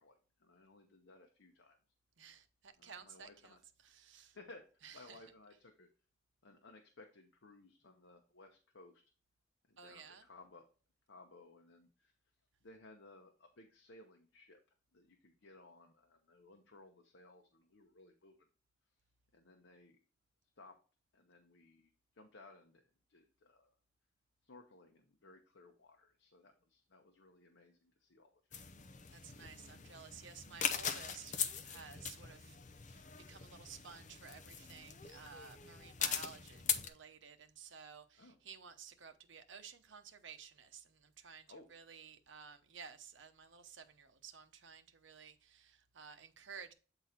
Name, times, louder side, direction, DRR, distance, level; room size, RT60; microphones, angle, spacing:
voice 1, 0.0-1.8 2.8-3.6 4.3-5.9 6.4-9.0 9.7-10.7 11.1-12.1 12.6-14.6 14.9-18.5 19.3-20.0 20.6-20.8 21.1-23.8 24.4-28.7 38.2-38.4 41.5-41.7, left 2 dB, 85° left, 0.9 m, -60 dB
voice 2, 2.2-3.6 3.8-4.4 4.8-5.2 9.8-10.3 29.1-32.6 32.8-46.7, right 6 dB, 85° right, 0.8 m, -54 dB
sound 1, 28.5-36.9, left 7 dB, 40° left, 0.7 m, -41 dB
8.2 x 3.9 x 4.3 m
head